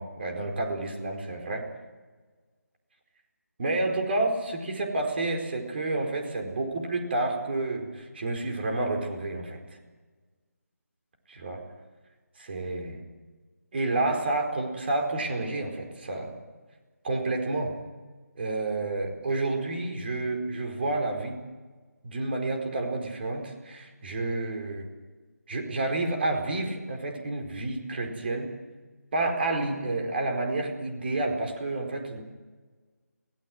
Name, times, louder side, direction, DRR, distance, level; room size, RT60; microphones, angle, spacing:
voice 1, 0.0-1.6 3.6-9.6 11.3-11.6 12.4-13.0 13.7-16.3 17.0-17.7 18.4-21.4 22.0-24.9 25.5-28.5 29.1-32.2, right 2 dB, 40° right, 3 dB, 4.5 m, -30 dB
23.5 x 18.0 x 7.9 m, 1.4 s
figure-of-eight pair, 160°, 9 cm